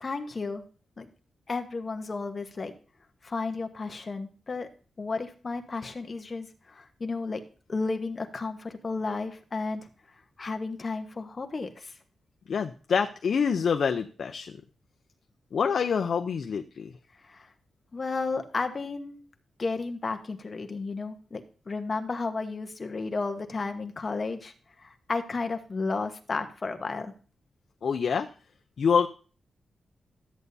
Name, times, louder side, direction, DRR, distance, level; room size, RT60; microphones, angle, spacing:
voice 1, 0.0-0.6 1.0-1.1 1.5-2.7 3.2-4.7 5.0-7.4 7.7-9.9 10.4-11.9 17.2-17.5 17.9-19.2 19.6-24.5 24.8-27.1, left 3 dB, 35° left, 6 dB, 1.1 m, -33 dB
voice 2, 12.5-14.6 15.5-16.9 27.8-28.3 28.8-29.1, left 6 dB, 65° left, 6 dB, 0.5 m, -26 dB
13.0 x 8.1 x 2.7 m, 0.38 s
wide cardioid pair, 115°, 0 cm